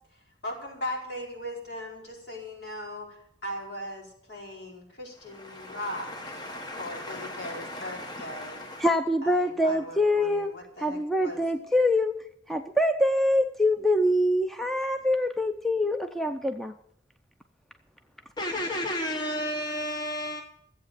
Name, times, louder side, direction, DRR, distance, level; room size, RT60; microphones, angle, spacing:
voice 1, 0.1-6.4 6.8-8.6 9.2-11.4, left 1 dB, 65° left, -1 dB, 4.8 m, -39 dB
voice 2, 5.3-8.9 18.4-20.4, left 1 dB, 25° left, 3 dB, 1.0 m, -34 dB
voice 3, 8.8-10.5 10.8-16.7, left 1 dB, ahead, 7 dB, 0.6 m, -25 dB
15.0 x 8.4 x 6.6 m, 0.71 s
head